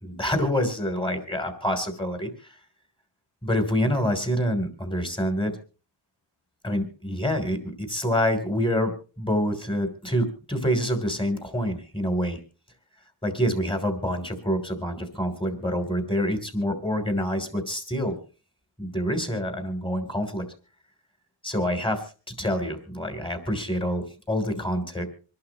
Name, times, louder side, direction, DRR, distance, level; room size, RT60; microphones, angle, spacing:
voice 1, 0.0-2.3 3.4-5.6 6.6-12.4 13.2-18.2 18.8-20.4 21.4-22.0 22.4-25.1, equal, 10° left, 6 dB, 3.2 m, -26 dB
26.0 x 11.5 x 3.0 m, 0.35 s
wide cardioid pair, 90°, 49 cm